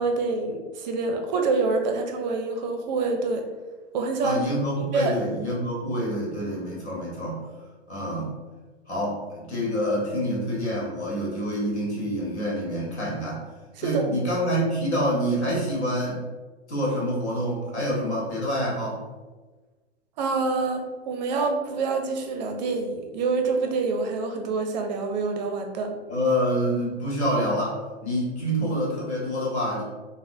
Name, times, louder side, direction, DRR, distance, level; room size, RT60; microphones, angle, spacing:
voice 1, 0.0-3.4 3.9-4.5 4.8-5.2 13.8-14.1 20.2-25.9, right 3 dB, 40° right, 4 dB, 0.4 m, -26 dB
voice 2, 4.2-7.5 7.9-8.3 8.9-13.4 13.8-16.2 16.7-19.0 26.1-29.8, equal, 80° left, -4 dB, 1.2 m, -27 dB
3.6 x 2.0 x 2.5 m, 1.3 s
figure-of-eight pair, 110°, 33 cm